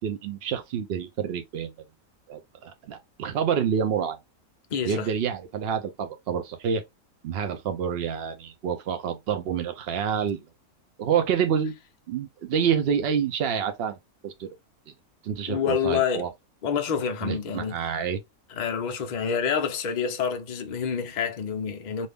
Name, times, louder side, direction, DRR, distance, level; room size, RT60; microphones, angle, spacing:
voice 1, 0.0-1.7 2.3-4.2 4.8-6.8 7.2-10.4 11.0-11.7 12.1-14.0 14.2-14.5 15.2-16.3 17.2-18.2, right 7 dB, 75° right, 0.5 m, -28 dB
voice 2, 4.7-5.1 15.5-16.3 16.6-17.8 18.6-22.1, left 7 dB, 85° left, 0.4 m, -27 dB
2.7 x 2.5 x 3.3 m
omnidirectional pair, 1.6 m